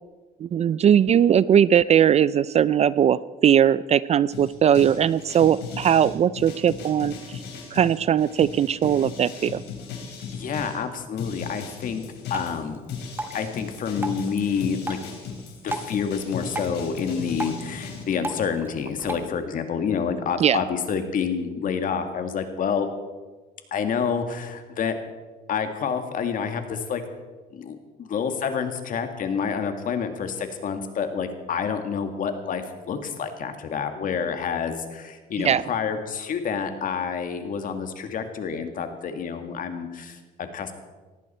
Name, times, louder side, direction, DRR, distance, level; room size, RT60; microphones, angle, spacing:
voice 1, 0.4-7.1 7.7-9.6 20.4-20.6 35.4-35.6, right 9 dB, 40° right, 19 dB, 0.4 m, -19 dB
sound 1, 4.3-10.8 11.2-18.0, left 5 dB, 75° left, 4.2 m, -37 dB
voice 2, 10.3-12.0 12.3-12.8 13.3-15.0 15.6-22.9 23.7-25.0 25.5-27.0 27.5-40.7, left 6 dB, 55° left, 7 dB, 2.1 m, -28 dB
Drip, 12.3-19.3, right 2 dB, 15° right, 1.4 m, -37 dB
18.5 x 14.5 x 4.4 m, 1.3 s
cardioid pair, 110°, 17 cm